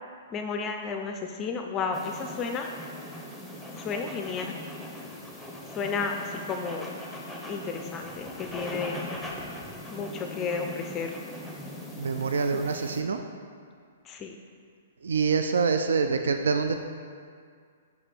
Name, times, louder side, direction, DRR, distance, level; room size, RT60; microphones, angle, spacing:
voice 1, 0.3-2.7 3.7-4.6 5.7-6.9 7.5-9.0 9.9-11.1 12.5-12.6 14.1-14.3, left 5 dB, 25° left, 4 dB, 0.4 m, -32 dB
sound 1, 1.9-13.0, left 1 dB, ahead, 0.8 m, -40 dB
voice 2, 12.0-13.2 15.0-16.7, right 5 dB, 80° right, 6 dB, 0.4 m, -25 dB
5.3 x 5.0 x 4.4 m, 2.1 s
hypercardioid pair, 135°, 0 cm